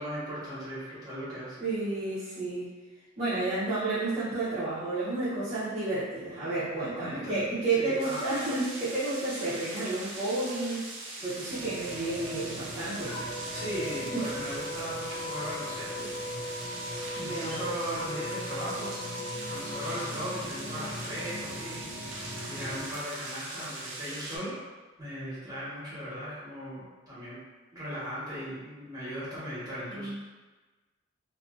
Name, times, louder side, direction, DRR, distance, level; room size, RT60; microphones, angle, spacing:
voice 1, 0.0-1.6 6.9-7.4 7.7-8.3 13.5-16.1 17.2-19.1 19.5-24.6 25.0-27.4 27.7-30.1, equal, 20° right, -10 dB, 1.2 m, -38 dB
voice 2, 1.6-2.7 3.2-10.8 11.2-13.2 14.1-14.2 17.2-17.6 29.9-30.2, right 2 dB, 35° right, -14 dB, 0.7 m, -31 dB
sound 1, 8.0-24.4, right 2 dB, 80° right, 0.6 m, -41 dB
sound 2, 11.5-22.9, equal, 80° left, 0.7 m, -42 dB
sound 3, 13.1-20.2, left 1 dB, 25° left, 0.3 m, -39 dB
2.6 x 2.6 x 2.4 m, 1.2 s
head